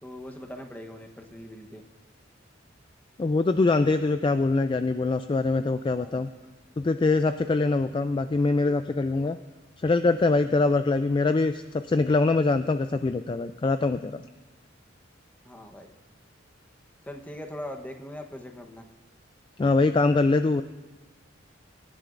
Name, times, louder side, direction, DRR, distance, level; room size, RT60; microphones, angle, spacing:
voice 1, 0.0-1.8 6.0-6.3 15.4-15.9 17.0-18.8, left 1 dB, 10° left, 4 dB, 1.0 m, -41 dB
voice 2, 3.2-6.3 6.8-9.4 9.8-14.2 19.6-20.6, left 3 dB, 25° left, 10 dB, 0.3 m, -23 dB
23.5 x 11.0 x 2.5 m, 1.3 s
head